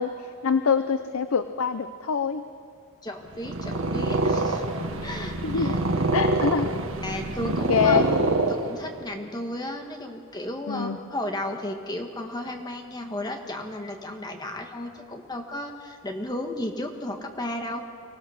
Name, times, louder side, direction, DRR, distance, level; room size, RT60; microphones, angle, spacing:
voice 1, 0.0-2.4 5.4-5.7 6.1-6.7 7.5-8.1 10.7-11.0, left 6 dB, 80° left, 10 dB, 0.6 m, -25 dB
voice 2, 3.0-4.6 5.0-5.8 7.0-8.0 8.5-17.8, left 1 dB, 20° left, 4 dB, 1.3 m, -34 dB
Purr, 3.3-9.0, right 2 dB, 70° right, 1.5 m, -25 dB
24.5 x 16.5 x 6.5 m, 2.3 s
head